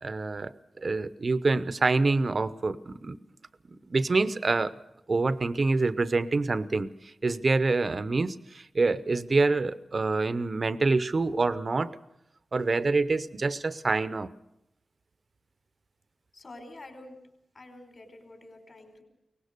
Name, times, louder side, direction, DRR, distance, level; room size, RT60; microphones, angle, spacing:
voice 1, 0.0-3.2 3.9-4.7 5.1-11.9 12.5-14.3, right 3 dB, 45° right, 14 dB, 0.8 m, -26 dB
voice 2, 16.3-17.2 17.5-19.0, left 2 dB, 45° left, 4 dB, 4.6 m, -47 dB
23.0 x 19.0 x 6.8 m, 0.84 s
wide cardioid pair, 105°, 0 cm